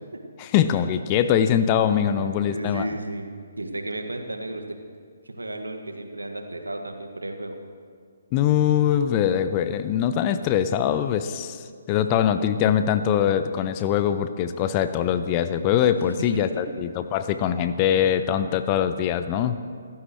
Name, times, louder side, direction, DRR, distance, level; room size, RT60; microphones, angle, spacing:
voice 1, 0.4-2.9 8.3-19.6, left 9 dB, 25° left, 11 dB, 0.7 m, -22 dB
voice 2, 2.2-3.3 3.6-4.6 5.2-7.6 16.2-16.6, right 1 dB, 75° right, 4 dB, 1.9 m, -33 dB
28.5 x 15.0 x 3.2 m, 2.1 s
figure-of-eight pair, 135°, 0 cm